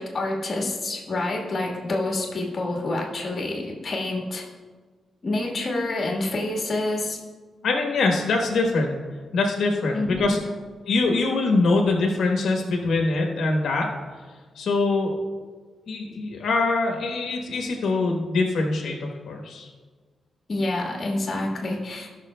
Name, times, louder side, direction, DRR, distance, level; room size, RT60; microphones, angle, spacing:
voice 1, 0.0-4.4 5.2-7.2 9.9-10.3 20.5-22.1, left 2 dB, 35° left, -1 dB, 1.5 m, -27 dB
voice 2, 7.6-9.0 9.3-10.4 10.9-13.9 14.6-15.1 15.9-19.7, left 3 dB, 80° left, 1 dB, 1.0 m, -23 dB
17.5 x 5.9 x 2.2 m, 1.5 s
wide cardioid pair, 160°, 0 cm